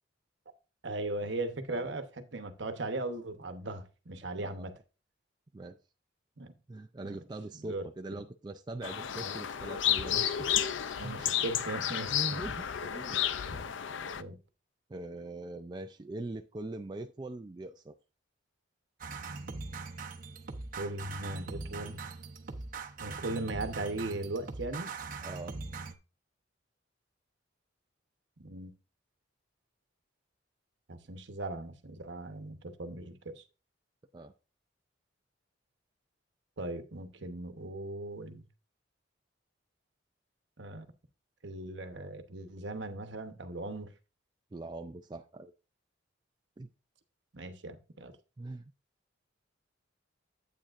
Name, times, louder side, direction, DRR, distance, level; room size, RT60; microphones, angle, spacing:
voice 1, 0.8-4.7 6.4-6.5 7.0-7.2 7.6-7.8 8.1-8.2 9.2-9.3 10.1-10.2 11.0-12.4 13.1-13.2 13.5-13.7 14.2-14.4 20.8-22.0 23.0-24.9 28.4-28.7 30.9-33.4 36.6-38.5 40.6-40.9 41.4-43.9 47.3-48.2, right 2 dB, 65° right, 1.0 m, -38 dB
voice 2, 4.4-4.7 5.5-5.8 6.7-10.7 11.0-11.2 12.1-13.2 14.9-17.9 25.2-25.6 34.1-34.3 44.5-45.5 46.6-46.7 48.4-48.6, right 2 dB, 20° right, 0.3 m, -42 dB
sound 1, 8.8-14.2, left 10 dB, 70° left, 0.5 m, -32 dB
sound 2, 19.0-25.9, right 4 dB, 45° right, 0.8 m, -41 dB
8.9 x 8.5 x 2.5 m
head